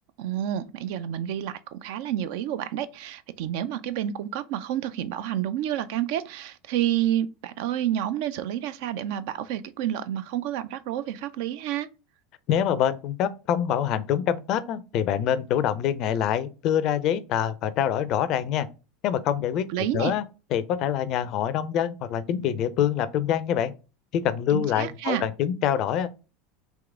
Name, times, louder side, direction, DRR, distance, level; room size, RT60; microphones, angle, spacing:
voice 1, 0.2-11.9 19.7-20.2 24.5-25.3, right 11 dB, 60° right, 0.3 m, -29 dB
voice 2, 12.5-18.7 19.0-19.7 19.9-20.2 20.5-23.7 24.1-26.1, left 9 dB, 45° left, 0.4 m, -25 dB
3.6 x 3.0 x 3.4 m
figure-of-eight pair, 75°, 0 cm